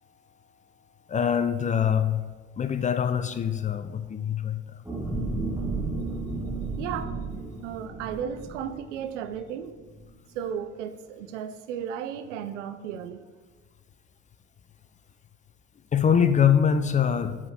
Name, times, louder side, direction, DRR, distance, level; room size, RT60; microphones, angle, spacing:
voice 1, 1.1-2.3 2.6-4.8 15.9-17.4, left 8 dB, 20° left, 10 dB, 0.4 m, -24 dB
sound 1, 4.8-9.4 9.8-10.0, right 3 dB, 10° right, 1.6 m, -33 dB
voice 2, 6.8-7.2 7.6-9.8 10.3-13.2, right 8 dB, 85° right, 11 dB, 0.5 m, -34 dB
4.9 x 4.8 x 4.2 m, 1.4 s
hypercardioid pair, 70°, 36 cm